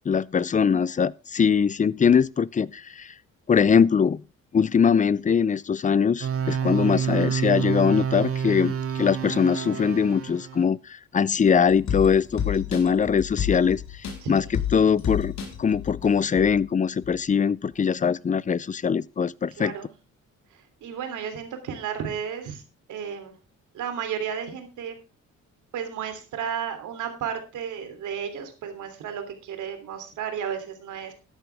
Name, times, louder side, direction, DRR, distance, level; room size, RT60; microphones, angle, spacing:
voice 1, 0.1-3.1 3.5-4.2 4.5-13.8 14.3-14.5 14.7-15.3 15.6-19.7, left 6 dB, 25° left, 0.5 m, -22 dB
sound 1, 6.2-10.6, right 7 dB, 50° right, 2.3 m, -28 dB
sound 2, 11.5-16.6 17.0-17.1, left 9 dB, 65° left, 3.6 m, -31 dB
voice 2, 14.2-14.5 19.6-19.9 20.5-22.6 22.9-23.3 23.7-25.0 25.7-31.1, right 8 dB, 80° right, 3.1 m, -33 dB
13.5 x 11.0 x 3.5 m
cardioid pair, 90°, 30 cm